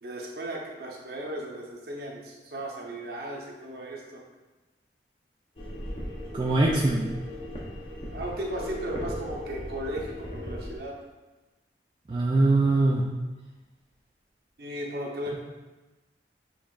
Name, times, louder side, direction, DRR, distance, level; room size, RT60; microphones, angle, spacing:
voice 1, 0.0-4.2 8.1-10.9 14.6-15.4, right 1 dB, 60° right, -1 dB, 0.8 m, -36 dB
sound 1, 5.6-10.8, equal, 30° left, 0.7 m, -37 dB
voice 2, 6.3-7.1 12.1-13.0, right 2 dB, 30° right, -3 dB, 0.3 m, -22 dB
6.9 x 3.0 x 2.4 m, 1.2 s
head